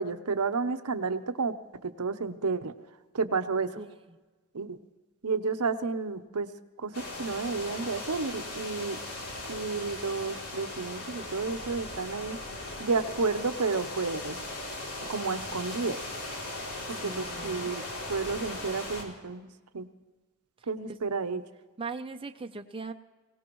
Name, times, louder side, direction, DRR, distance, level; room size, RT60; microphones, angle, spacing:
voice 1, 0.0-1.5 1.8-2.7 3.1-3.8 4.5-4.8 5.2-6.5 6.8-9.0 9.5-12.4 12.8-14.4 15.1-16.0 16.9-19.9 20.7-21.4, right 4 dB, 80° right, 10 dB, 0.8 m, -31 dB
voice 2, 3.7-4.2 16.9-17.7 21.8-22.9, right 4 dB, 25° right, 5 dB, 0.6 m, -40 dB
sound 1, 6.9-19.0, left 2 dB, 90° left, 3.1 m, -38 dB
22.5 x 18.0 x 3.1 m, 1.3 s
head